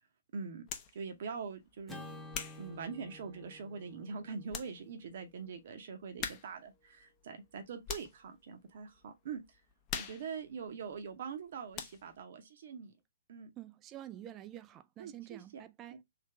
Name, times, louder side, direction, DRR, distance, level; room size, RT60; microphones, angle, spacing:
voice 1, 0.3-0.6 0.9-2.2 2.6-9.4 9.9-12.9 13.3-13.5 15.0-15.4 15.9-16.0, right 5 dB, 50° right, 0.8 m, -43 dB
sound 1, 0.7-1.0 1.6-3.6 4.1-4.2 4.5-4.8 5.1-5.2 6.2-6.7 7.0-8.3 8.7-9.0 9.3-11.4 11.7-12.2, left 8 dB, 25° left, 0.7 m, -43 dB
Acoustic guitar / Strum, 1.9-6.3, left 2 dB, 5° left, 1.0 m, -52 dB
voice 2, 13.6-16.0, right 12 dB, 20° right, 0.4 m, -48 dB
3.3 x 2.7 x 3.3 m
figure-of-eight pair, 125°, 0 cm